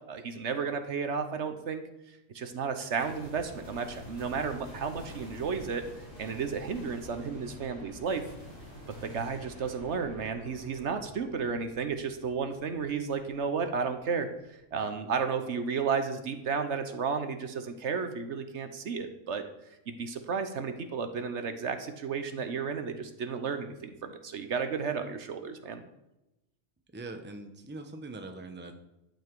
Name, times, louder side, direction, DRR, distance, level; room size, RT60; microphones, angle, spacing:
voice 1, 0.1-1.8 2.3-5.8 6.2-8.2 9.0-19.4 19.9-25.8, right 5 dB, 65° right, 8 dB, 1.1 m, -33 dB
sound 1, 3.0-14.3, equal, 80° left, 4.1 m, -48 dB
voice 2, 26.9-28.8, right 2 dB, 10° right, 6 dB, 0.8 m, -42 dB
11.5 x 7.2 x 4.7 m, 0.93 s
omnidirectional pair, 1.3 m